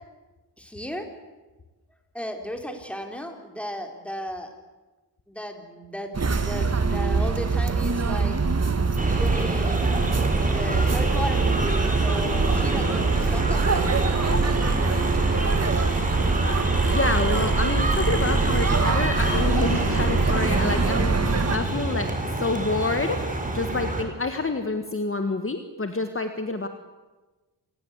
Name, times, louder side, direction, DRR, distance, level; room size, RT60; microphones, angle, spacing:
voice 1, 0.6-1.1 2.1-4.5 5.3-8.4 9.1-9.9 10.5-13.9, equal, 5° left, 4 dB, 3.8 m, -35 dB
sound 1, 6.1-21.6, right 4 dB, 40° right, 1.9 m, -24 dB
sound 2, 9.0-24.0, right 2 dB, 20° right, 4.3 m, -27 dB
voice 2, 16.9-22.1 22.4-23.2 23.5-26.7, left 3 dB, 30° left, 7 dB, 1.7 m, -27 dB
27.5 x 19.5 x 8.2 m, 1.2 s
wide cardioid pair, 100°, 41 cm